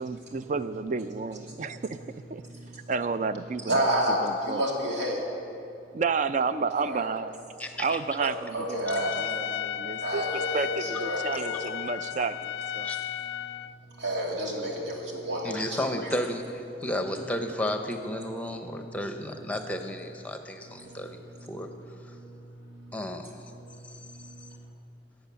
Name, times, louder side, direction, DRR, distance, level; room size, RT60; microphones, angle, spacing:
voice 1, 0.0-2.0 2.3-2.4 2.9-4.6 5.9-7.4 7.8-12.9, right 4 dB, 45° right, 13 dB, 0.4 m, -31 dB
voice 2, 3.7-5.2 6.8-7.1 8.5-9.1 10.0-11.6 13.9-16.1 18.8-18.9 20.6-21.7 22.0-23.0 23.5-24.6, right 1 dB, 90° right, -2 dB, 2.7 m, -31 dB
voice 3, 7.6-8.0 12.8-13.0 15.4-21.7 22.9-23.3, left 1 dB, 10° left, 6 dB, 0.8 m, -33 dB
Trumpet, 8.8-13.7, left 10 dB, 85° left, 0.3 m, -34 dB
14.5 x 8.7 x 6.9 m, 2.6 s
head